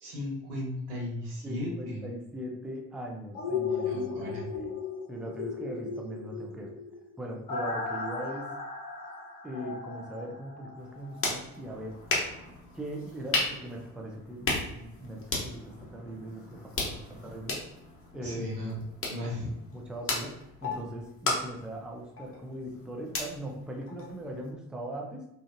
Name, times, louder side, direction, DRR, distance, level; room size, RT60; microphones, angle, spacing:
voice 1, 0.0-2.1 3.7-4.5 18.2-18.8 19.1-19.5, left 1 dB, 85° right, -5 dB, 0.8 m, -36 dB
voice 2, 1.4-4.7 5.1-6.7 7.2-8.5 9.4-12.0 12.7-17.6 18.1-18.8 19.5-25.3, right 1 dB, ahead, 0 dB, 0.4 m, -40 dB
sound 1, 3.3-11.2 11.6-11.7, left 5 dB, 85° left, 0.7 m, -36 dB
sound 2, 10.8-24.5, left 2 dB, 30° left, 0.9 m, -36 dB
2.5 x 2.4 x 2.5 m, 0.81 s
figure-of-eight pair, 45°, 43 cm